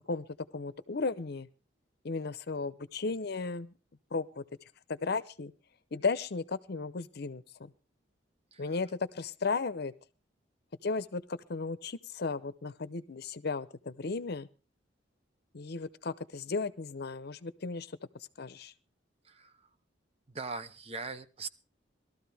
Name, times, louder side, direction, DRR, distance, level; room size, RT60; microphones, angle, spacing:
voice 1, 0.1-1.5 2.0-3.7 4.1-4.4 4.9-5.5 5.9-7.7 8.6-9.9 10.8-14.5 15.5-18.7, left 4 dB, 60° left, 15 dB, 0.7 m, -35 dB
voice 2, 19.2-19.7 20.3-21.5, right 4 dB, 35° right, 12 dB, 0.7 m, -41 dB
19.0 x 13.0 x 3.4 m, 0.33 s
head